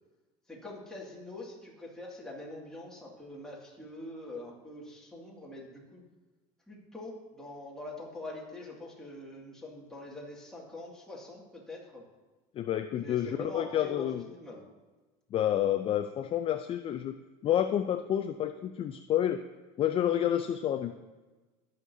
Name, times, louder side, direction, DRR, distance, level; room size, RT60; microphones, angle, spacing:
voice 1, 0.5-6.0 6.7-12.0 13.0-14.6, left 2 dB, 5° left, -4 dB, 2.2 m, -44 dB
voice 2, 12.6-14.2 15.3-17.1 17.4-19.4 19.8-20.9, left 11 dB, 35° left, 8 dB, 0.4 m, -29 dB
18.0 x 6.5 x 2.7 m, 1.2 s
cardioid pair, 135°, 17 cm